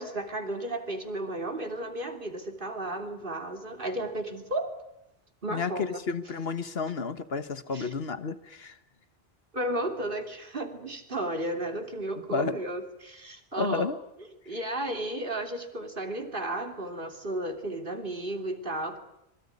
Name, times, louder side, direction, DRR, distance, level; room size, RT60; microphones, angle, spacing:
voice 1, 0.0-4.7 5.4-6.0 7.7-7.9 9.5-13.9 14.5-19.0, right 1 dB, 55° right, 5 dB, 3.2 m, -33 dB
voice 2, 5.5-8.8 12.3-12.6 13.6-14.0, left 4 dB, 75° left, 11 dB, 1.5 m, -31 dB
25.5 x 22.0 x 9.8 m, 0.84 s
omnidirectional pair, 1.0 m